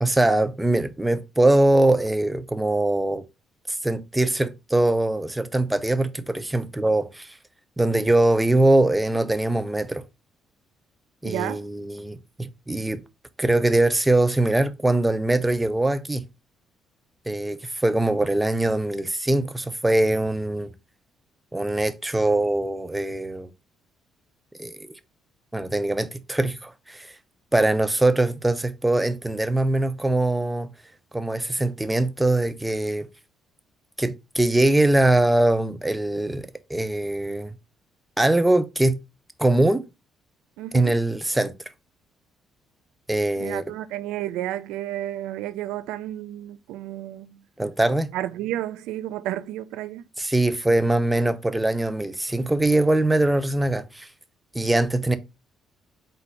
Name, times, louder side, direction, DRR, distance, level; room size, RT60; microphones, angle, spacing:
voice 1, 0.0-3.2 3.7-7.3 7.8-10.0 11.2-13.0 13.4-16.2 17.3-20.7 21.5-23.5 24.6-25.0 25.5-27.1 27.5-30.7 31.1-33.1 34.0-37.5 38.2-39.0 39.4-39.8 40.7-41.5 43.1-43.6 47.6-48.1 50.2-54.1 54.5-55.2, right 1 dB, 10° right, 0.7 m, -22 dB
voice 2, 11.2-11.6 40.6-40.9 43.4-47.4 48.1-50.0, right 13 dB, 80° right, 0.3 m, -31 dB
4.1 x 2.7 x 4.5 m
hypercardioid pair, 55°, 0 cm